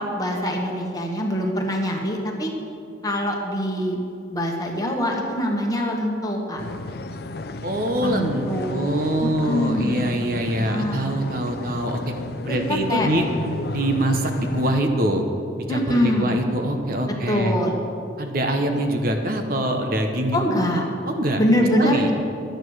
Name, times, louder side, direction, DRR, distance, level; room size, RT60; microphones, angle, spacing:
voice 1, 0.0-2.5 3.0-4.0 4.3-6.6 8.0-8.8 9.2-11.2 12.5-13.1 15.7-16.4 17.3-17.8 20.3-20.8 21.4-22.1, equal, 20° left, 0 dB, 1.4 m, -24 dB
sound 1, 6.6-14.8, left 2 dB, 55° left, 0.5 m, -33 dB
voice 2, 7.6-12.1 12.4-13.3 13.7-15.3 15.7-17.6 18.2-20.6 21.1-21.4 21.8-22.1, right 1 dB, 50° right, 4 dB, 1.0 m, -24 dB
12.0 x 9.1 x 6.4 m, 2.5 s
head